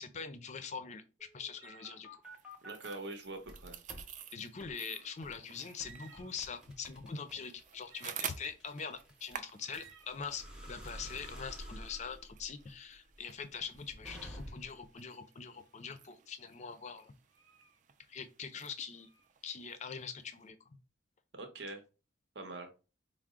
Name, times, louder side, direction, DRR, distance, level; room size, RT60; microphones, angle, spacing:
voice 1, 0.0-2.1 4.3-17.1 18.1-19.1 19.4-20.6, left 6 dB, 35° left, 0.4 m, -43 dB
sound 1, 1.2-3.0 3.4-4.1 4.6-4.8 5.2-5.4 5.8-14.9, equal, 5° right, 0.7 m, -50 dB
sound 2, 1.5-2.1 3.0-3.4 5.3-5.4 5.7-6.6 7.1-7.2 7.8-8.6 9.6-10.2 13.5-13.8 14.5-14.9 15.5-16.0 16.5-17.8 18.9-20.0, right 6 dB, 85° right, 1.0 m, -61 dB
sound 3, 2.2-20.5, right 8 dB, 40° right, 0.3 m, -51 dB
voice 2, 2.6-3.8 21.3-21.8 22.3-22.7, right 2 dB, 60° right, 0.8 m, -44 dB
4.6 x 2.0 x 3.6 m
head